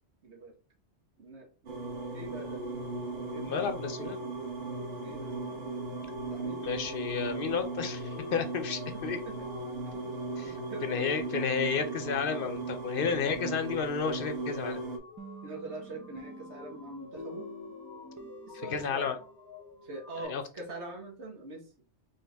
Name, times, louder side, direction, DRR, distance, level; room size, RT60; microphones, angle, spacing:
voice 1, 0.2-0.5 1.2-1.5 2.1-2.6 3.3-3.7 5.0-5.6 6.3-6.7 8.2-8.3 8.9-9.5 9.9-10.1 10.5-11.1 15.4-17.5 18.5-19.1 19.8-21.7, right 2 dB, 85° right, 1 dB, 1.5 m, -43 dB
sound 1, 1.7-15.0, right 3 dB, 65° right, 1.3 m, -37 dB
voice 2, 3.4-4.2 6.6-9.2 10.4-14.8 18.5-19.2 20.2-20.4, left 6 dB, 60° left, 9 dB, 0.8 m, -32 dB
sound 2, 4.6-20.2, left 3 dB, 25° left, 0.8 m, -51 dB
sound 3, 15.2-19.9, equal, 25° right, 0.4 m, -49 dB
4.2 x 3.4 x 3.4 m, 0.38 s
omnidirectional pair, 1.1 m